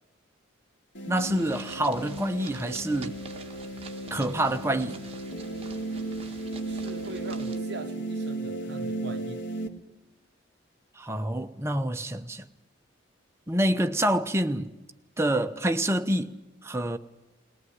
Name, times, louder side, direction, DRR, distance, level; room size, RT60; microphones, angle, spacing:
sound 1, 0.9-9.7, right 2 dB, 60° left, 2.0 m, -35 dB
voice 1, 1.1-3.2 4.1-5.0 11.0-12.4 13.5-14.7 15.2-17.0, right 1 dB, 15° right, 0.8 m, -27 dB
sound 2, 1.1-7.6, right 4 dB, 30° right, 1.2 m, -47 dB
voice 2, 6.6-9.4, right 3 dB, 55° right, 0.7 m, -41 dB
20.0 x 19.0 x 9.6 m
head